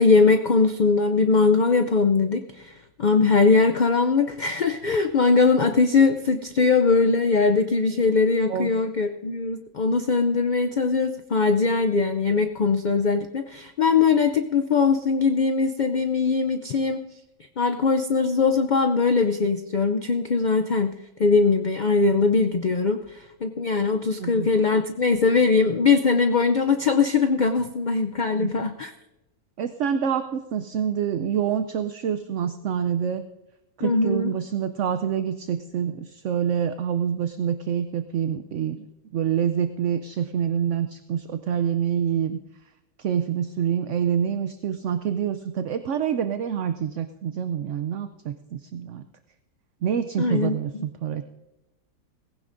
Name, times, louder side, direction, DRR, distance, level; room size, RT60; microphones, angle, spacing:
voice 1, 0.0-17.0 17.6-20.9 21.2-28.9 33.8-34.3 50.2-50.5, left 4 dB, 90° left, 7 dB, 0.4 m, -21 dB
voice 2, 28.4-28.7 29.6-33.2 33.8-38.9 39.1-42.4 43.0-49.0 49.8-51.2, right 8 dB, 65° right, 9 dB, 0.8 m, -26 dB
18.5 x 16.0 x 2.6 m, 0.96 s
omnidirectional pair, 1.6 m